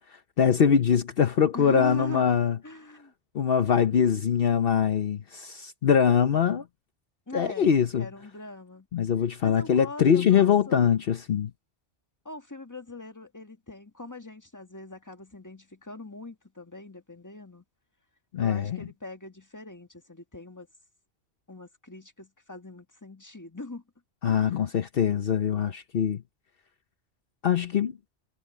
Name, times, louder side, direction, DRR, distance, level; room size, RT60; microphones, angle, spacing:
voice 1, 0.0-2.6 3.3-6.6 7.3-8.1 8.9-11.5 18.3-18.8 24.2-26.2 27.4-28.0, left 7 dB, 60° left, 1.0 m, -23 dB
voice 2, 1.5-2.3 2.6-3.1 7.3-8.9 9.4-10.9 12.3-17.6 18.4-20.7 21.5-23.8 24.2-24.7, left 2 dB, 15° left, 1.8 m, -41 dB
omnidirectional pair, 1.1 m